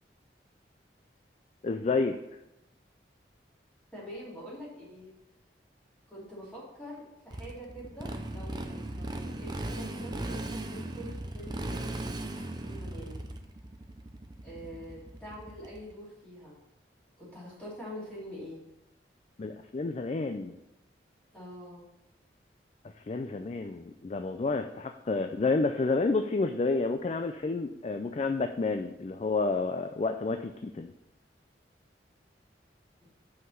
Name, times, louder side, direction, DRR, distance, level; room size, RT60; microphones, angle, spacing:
voice 1, 1.6-2.1 19.4-20.6 23.0-30.9, left 3 dB, 35° left, 7 dB, 0.4 m, -30 dB
voice 2, 3.9-5.1 6.1-13.2 14.4-16.5 17.2-18.6 21.3-21.8 33.0-33.1, equal, 5° left, -8 dB, 2.9 m, -45 dB
Motorcycle, 7.3-15.9, right 1 dB, 25° right, 0.6 m, -38 dB
5.8 x 5.5 x 6.4 m, 0.89 s
head